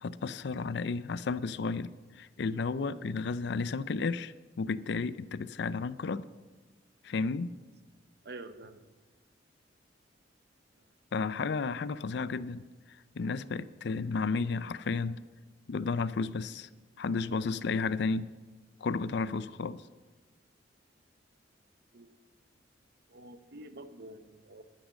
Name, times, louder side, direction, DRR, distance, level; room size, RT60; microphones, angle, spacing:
voice 1, 0.0-6.2 7.0-7.5 11.1-12.6 13.2-15.2 15.7-16.7 17.0-18.3 18.8-19.8, left 4 dB, 65° left, 16 dB, 0.4 m, -32 dB
voice 2, 8.2-8.8 21.9-22.1 23.1-24.6, right 2 dB, 60° right, 10 dB, 0.8 m, -47 dB
11.5 x 10.0 x 6.3 m, 1.3 s
head